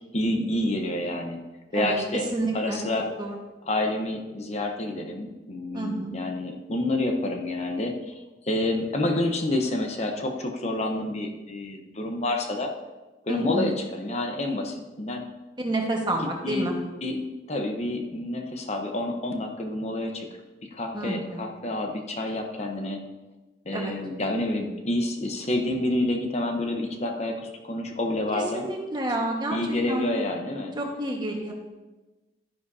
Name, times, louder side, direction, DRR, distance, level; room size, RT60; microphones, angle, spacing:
voice 1, 0.1-1.4 1.7-2.2 2.5-3.1 3.6-8.2 8.4-12.7 13.3-15.2 16.4-16.7 17.0-17.2 17.5-20.3 20.7-23.0 23.6-28.7 29.5-30.7, left 1 dB, 40° left, 3 dB, 1.0 m, -28 dB
voice 2, 1.7-2.8 3.2-3.3 5.7-6.2 13.3-13.7 15.6-16.7 20.9-21.5 23.7-23.9 28.3-29.6 29.9-30.1 30.8-31.5, right 1 dB, 25° right, 1 dB, 1.4 m, -29 dB
12.5 x 10.0 x 2.8 m, 1.1 s
head